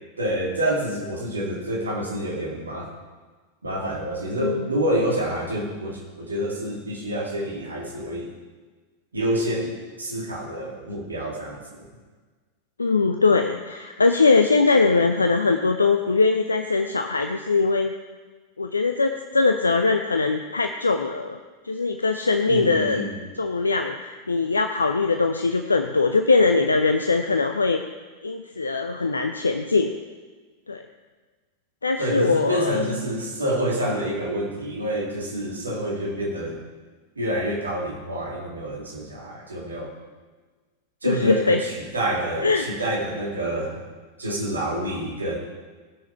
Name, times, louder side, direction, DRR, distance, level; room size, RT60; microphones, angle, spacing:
voice 1, 0.2-2.9 3.6-8.3 9.1-11.9 22.5-23.2 32.0-36.6 37.2-39.9 41.0-43.8 44.2-45.4, right 1 dB, 75° right, -2 dB, 2.3 m, -27 dB
voice 2, 4.4-4.7 12.8-17.9 18.6-21.4 21.6-23.0 23.4-27.8 28.2-29.9 30.7-30.8 31.8-32.9 41.0-41.6 42.4-42.7, left 4 dB, 80° left, 6 dB, 0.6 m, -21 dB
18.5 x 6.2 x 4.3 m, 1.4 s
figure-of-eight pair, 90°, 0 cm